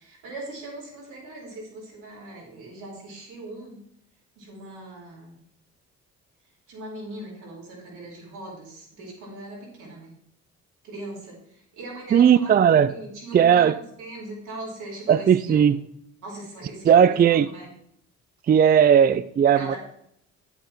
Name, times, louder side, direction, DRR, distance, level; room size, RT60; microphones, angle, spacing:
voice 1, 0.0-3.8 4.4-5.4 6.7-10.1 10.8-12.5 12.9-15.7 16.2-17.7 19.5-19.8, right 2 dB, 80° right, 4.5 m, -40 dB
voice 2, 12.1-12.9 13.3-13.8 15.1-15.8 16.9-17.5 18.5-19.8, right 8 dB, 30° right, 0.4 m, -17 dB
9.0 x 7.8 x 4.5 m
cardioid pair, 90°, 30 cm